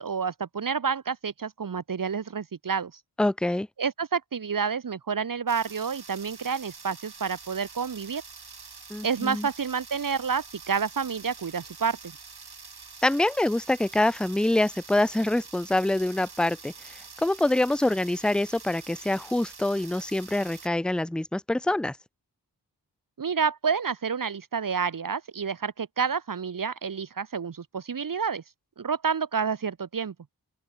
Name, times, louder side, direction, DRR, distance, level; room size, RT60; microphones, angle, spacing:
voice 1, 0.0-2.9 3.8-8.2 9.0-12.1 23.2-28.4 28.8-30.1, right 6 dB, 55° right, 0.8 m, -29 dB
voice 2, 3.2-3.7 8.9-9.5 13.0-22.0, left 1 dB, ahead, 0.6 m, -25 dB
sound 1, 5.5-20.7, right 4 dB, 70° right, 2.9 m, -46 dB
open air
wide cardioid pair, 70°, 40 cm